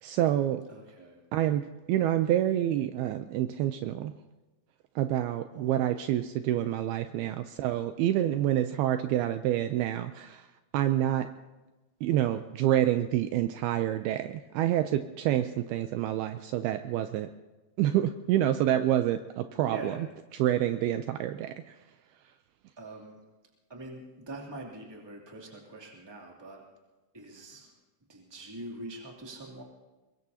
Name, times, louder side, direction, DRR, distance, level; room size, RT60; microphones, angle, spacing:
voice 1, 0.0-0.6 1.3-4.1 5.0-10.5 10.7-11.3 12.0-17.3 17.8-19.9 20.4-21.8, right 12 dB, 80° right, 9 dB, 2.4 m, -27 dB
voice 2, 0.7-1.2 5.5-6.0 19.6-20.1 22.8-23.2 23.7-26.6 27.1-27.7 28.1-29.6, right 2 dB, 10° right, -2 dB, 1.8 m, -44 dB
23.0 x 22.0 x 2.8 m, 1.2 s
omnidirectional pair, 4.8 m